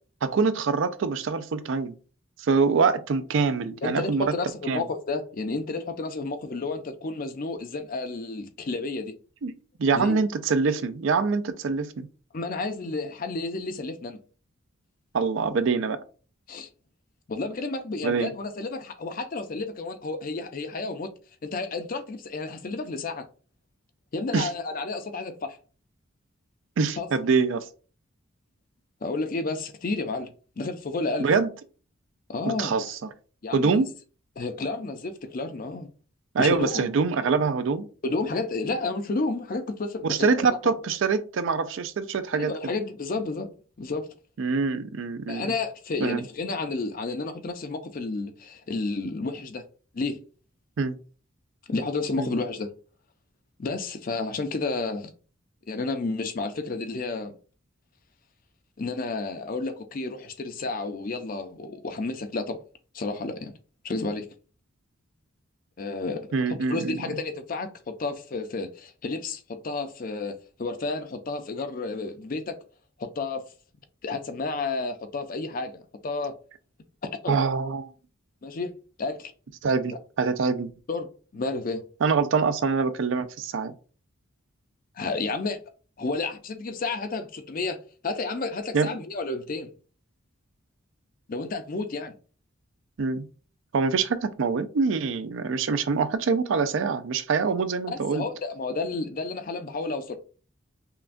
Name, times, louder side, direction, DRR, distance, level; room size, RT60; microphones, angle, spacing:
voice 1, 0.2-1.9 2.4-4.3 4.7-4.8 9.4-9.5 9.8-12.1 15.1-16.0 18.0-18.3 24.3-24.5 26.8-27.7 31.2-31.5 32.5-33.0 33.5-33.9 36.3-37.9 40.1-42.5 44.4-45.5 46.0-46.2 50.8-51.0 52.2-52.3 66.3-67.0 77.3-77.9 79.6-80.7 82.0-83.7 88.7-88.9 93.0-93.3 93.7-98.2, right 5 dB, 65° right, 0.4 m, -25 dB
voice 2, 3.8-9.1 9.9-10.2 12.3-14.2 16.5-16.7 17.3-21.1 21.4-23.3 24.1-25.6 27.0-27.1 29.0-30.3 30.6-31.3 32.3-33.0 33.4-33.8 34.4-35.9 36.4-36.9 38.0-40.7 42.3-43.5 43.8-44.1 45.3-49.6 49.9-50.2 51.7-52.7 53.6-55.1 55.7-57.3 58.8-62.6 62.9-63.5 63.8-64.3 65.8-72.6 73.0-73.4 74.0-76.3 77.2-77.4 78.4-78.7 79.0-79.3 80.9-81.1 81.3-81.8 85.0-85.6 86.0-87.8 88.0-89.7 91.3-92.2 97.9-100.2, left 3 dB, 40° left, 0.5 m, -31 dB
5.6 x 2.2 x 2.5 m
head